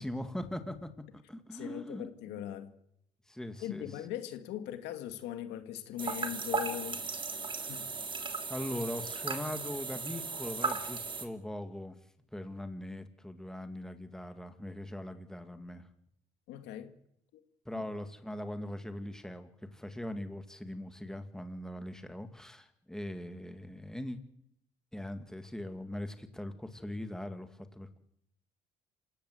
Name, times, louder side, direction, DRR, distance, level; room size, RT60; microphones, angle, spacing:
voice 1, 0.0-2.5 3.3-3.9 7.6-7.7 8.5-12.0 12.3-15.9 17.7-24.2 24.9-28.0, left 1 dB, 5° left, 2.3 m, -41 dB
voice 2, 1.5-2.7 3.6-7.0 7.3-7.9 16.5-16.9 17.3-17.4 17.7-17.8, left 11 dB, 85° left, 2.3 m, -40 dB
sound 1, 6.0-11.3, right 4 dB, 30° right, 3.3 m, -36 dB
27.5 x 16.5 x 8.1 m
cardioid pair, 110°, 17 cm